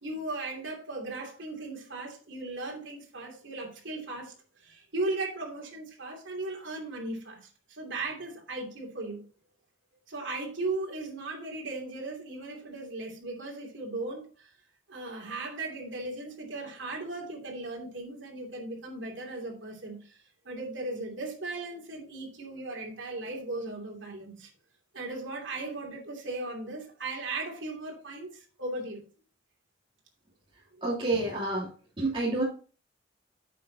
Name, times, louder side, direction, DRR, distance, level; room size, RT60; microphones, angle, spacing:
voice 1, 0.0-4.3 4.6-7.4 7.7-9.2 10.1-14.5 14.9-20.2 20.4-24.5 24.9-29.0 30.7-30.8, right 2 dB, 70° right, 0 dB, 2.8 m, -37 dB
voice 2, 30.8-31.7 32.0-32.4, right 2 dB, 25° right, -8 dB, 3.0 m, -28 dB
10.0 x 7.5 x 2.8 m, 0.39 s
head